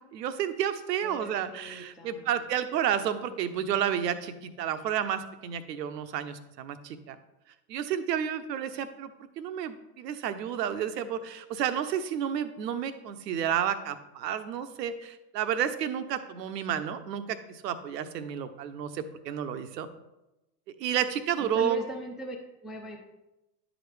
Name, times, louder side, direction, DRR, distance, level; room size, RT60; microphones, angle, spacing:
voice 1, 0.0-7.2 7.7-9.1 9.4-19.9 20.8-21.8, right 9 dB, 85° right, 11 dB, 0.8 m, -31 dB
voice 2, 1.0-2.5 21.4-22.4 22.6-23.0, equal, ahead, -1 dB, 0.4 m, -40 dB
9.8 x 5.1 x 3.2 m, 0.97 s
hypercardioid pair, 115°, 48 cm